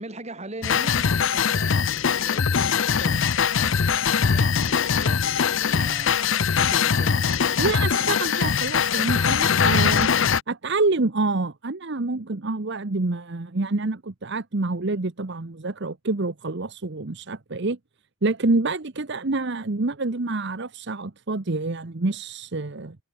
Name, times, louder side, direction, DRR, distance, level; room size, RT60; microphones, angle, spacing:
voice 1, 0.0-5.2 5.6-7.5, right 1 dB, 30° right, 3.5 m, -41 dB
sound 1, 0.6-10.4, left 6 dB, 60° left, 0.6 m, -22 dB
voice 2, 7.6-10.1 10.5-17.8 18.2-23.0, right 3 dB, 55° right, 1.0 m, -27 dB
head